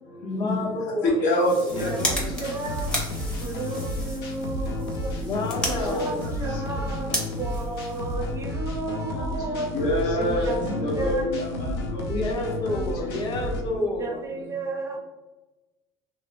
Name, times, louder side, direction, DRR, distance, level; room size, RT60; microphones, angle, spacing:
voice 1, 0.2-1.1 5.2-6.1 10.6-14.2, left 2 dB, 35° left, 0 dB, 0.7 m, -30 dB
voice 2, 1.0-2.1 5.6-6.3 9.7-12.4, left 1 dB, 65° left, -3 dB, 1.0 m, -26 dB
sound 1, 1.3-8.5, equal, 5° left, 0.8 m, -35 dB
sound 2, 1.7-13.6, left 1 dB, 85° left, 0.5 m, -32 dB
voice 3, 1.7-5.2 5.8-9.7 10.1-11.2 11.6-12.0 13.7-15.0, right 2 dB, 25° right, 2 dB, 0.5 m, -34 dB
2.9 x 2.0 x 2.5 m, 1.1 s
supercardioid pair, 95°, 13 cm